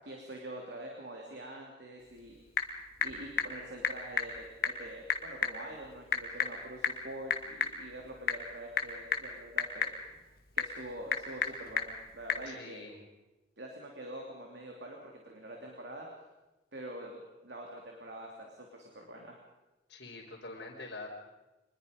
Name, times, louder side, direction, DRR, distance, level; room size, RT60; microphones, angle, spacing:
voice 1, 0.0-2.3 3.0-9.9 10.5-12.8 13.6-16.1 16.7-19.4, right 1 dB, 65° right, 0 dB, 3.1 m, -45 dB
Typing / Telephone, 2.0-12.5, left 5 dB, 50° left, 1.9 m, -36 dB
voice 2, 12.5-13.0 19.9-21.1, left 3 dB, 70° left, -5 dB, 3.5 m, -45 dB
25.0 x 21.0 x 5.3 m, 1.1 s
head